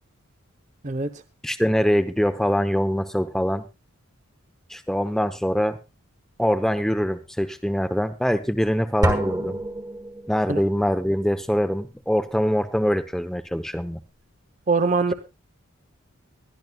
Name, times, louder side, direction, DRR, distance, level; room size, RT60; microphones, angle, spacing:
voice 1, 1.4-3.6 4.7-5.8 6.4-9.6 10.3-14.0, equal, ahead, 10 dB, 0.8 m, -23 dB
sound 1, 9.0-10.7, right 1 dB, 20° right, 1.6 m, -27 dB
voice 2, 14.7-15.1, right 4 dB, 35° right, 10 dB, 0.7 m, -22 dB
21.5 x 12.5 x 2.3 m, 0.26 s
head